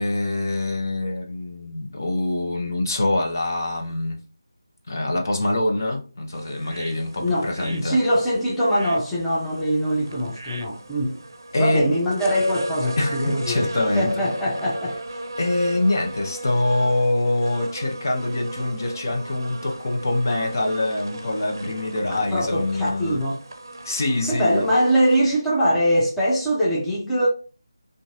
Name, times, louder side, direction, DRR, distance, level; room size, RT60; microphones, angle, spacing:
voice 1, 0.0-4.2 4.9-8.0 11.5-11.9 13.0-14.1 15.4-23.2 23.8-24.7, left 2 dB, 45° left, 0.6 m, -24 dB
sound 1, 6.3-25.2, right 1 dB, 60° right, 0.5 m, -37 dB
voice 2, 7.2-11.2 11.6-15.2 22.1-23.4 24.2-27.3, equal, 5° left, 0.5 m, -22 dB
3.9 x 2.5 x 2.4 m
figure-of-eight pair, 160°, 2 cm